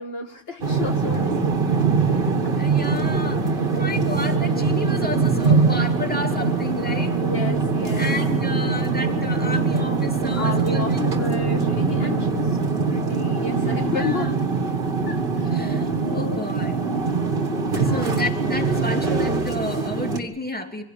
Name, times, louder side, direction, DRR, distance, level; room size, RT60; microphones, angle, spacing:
voice 1, 0.0-2.5 3.7-3.8 7.1-8.2 10.4-14.5 15.1-15.7 16.0-16.5 17.6-18.1, left 3 dB, 70° left, 5 dB, 1.9 m, -33 dB
sound 1, 0.6-20.2, right 4 dB, 60° right, 1.8 m, -22 dB
voice 2, 2.6-7.1 8.0-11.1 13.9-14.2 15.5-15.9 16.1-16.7 17.7-20.8, left 2 dB, 10° left, 3 dB, 2.6 m, -31 dB
24.5 x 16.5 x 8.5 m, 0.75 s
omnidirectional pair, 1.0 m